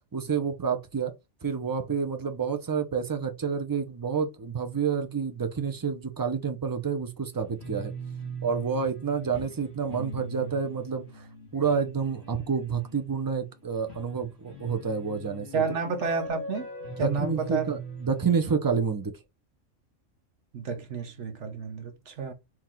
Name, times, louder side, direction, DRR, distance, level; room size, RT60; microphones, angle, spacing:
voice 1, 0.1-1.1 1.4-7.9 8.4-11.3 11.5-15.6 17.0-19.1, right 6 dB, 30° right, 0.4 m, -29 dB
sound 1, 7.3-18.3, right 2 dB, 55° left, 2.0 m, -41 dB
voice 2, 15.5-16.7 17.0-17.7 20.5-22.3, right 5 dB, 65° right, 1.3 m, -30 dB
4.5 x 3.0 x 3.7 m
omnidirectional pair, 1.3 m